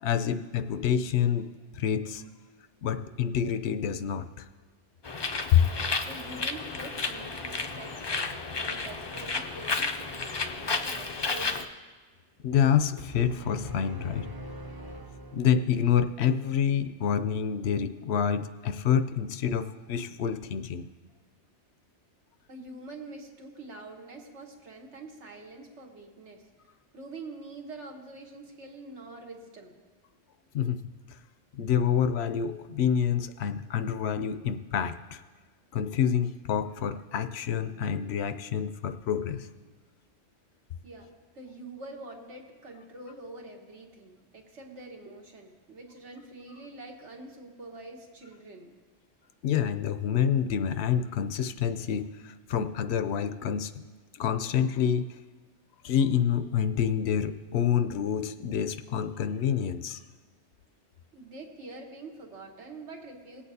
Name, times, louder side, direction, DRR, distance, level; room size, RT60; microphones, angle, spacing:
voice 1, 0.0-1.5 1.7-2.2 2.8-4.4 5.5-5.7 12.4-14.3 15.3-20.9 30.5-30.8 31.5-35.2 35.7-39.5 49.4-53.7 54.1-55.0 55.8-60.0, left 8 dB, 70° left, 10 dB, 0.8 m, -27 dB
Bird, 5.0-11.6, left 4 dB, 45° left, 0.3 m, -32 dB
voice 2, 6.0-11.6 22.5-26.4 26.9-29.8 40.8-41.1 41.3-48.8 61.1-63.4, right 2 dB, 75° right, 1 dB, 1.6 m, -45 dB
sound 1, 13.0-16.0, right 1 dB, 25° right, 0.6 m, -43 dB
18.5 x 8.4 x 2.7 m, 1.5 s
omnidirectional pair, 1.2 m